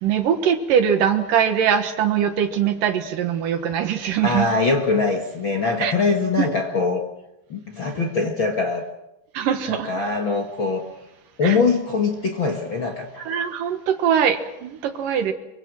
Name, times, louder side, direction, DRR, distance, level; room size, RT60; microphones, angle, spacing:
voice 1, 0.0-4.5 5.8-6.0 6.4-6.5 9.3-10.0 11.4-11.6 13.2-15.3, right 8 dB, 65° right, 7 dB, 2.5 m, -22 dB
voice 2, 4.2-7.0 7.5-8.8 9.7-10.9 11.4-13.3, left 4 dB, 55° left, 2 dB, 1.4 m, -22 dB
25.0 x 24.0 x 6.3 m, 0.90 s
omnidirectional pair, 5.1 m